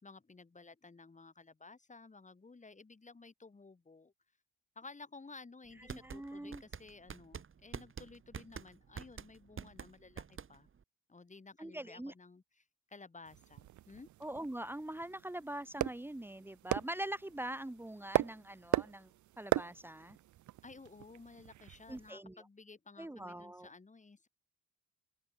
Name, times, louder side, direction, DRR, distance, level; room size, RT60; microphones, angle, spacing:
voice 1, 0.0-4.1 4.8-10.7 11.1-14.1 20.6-24.3, left 3 dB, 25° left, 3.8 m, -55 dB
sound 1, 5.7-10.8, right 6 dB, 45° right, 3.6 m, -47 dB
voice 2, 5.8-6.6 11.6-12.1 14.2-19.1 19.4-20.2 21.9-22.4 23.0-23.7, right 1 dB, 5° right, 2.1 m, -43 dB
sound 2, 13.3-22.1, right 14 dB, 70° right, 1.0 m, -39 dB
open air
cardioid pair, 90°, 30 cm